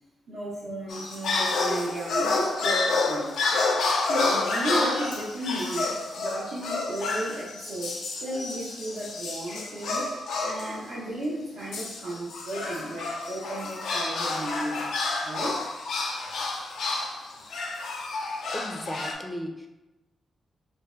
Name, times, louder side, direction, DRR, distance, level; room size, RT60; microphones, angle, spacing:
voice 1, 0.3-3.3 4.1-10.1 10.4-15.7 16.6-16.7, right 1 dB, 80° right, -9 dB, 0.8 m, -34 dB
sound 1, 0.9-10.8 11.7-19.1, left 3 dB, 90° left, 0.5 m, -29 dB
voice 2, 18.5-19.7, equal, 5° left, 2 dB, 0.5 m, -35 dB
2.7 x 2.1 x 3.5 m, 0.98 s
cardioid pair, 70°, 0 cm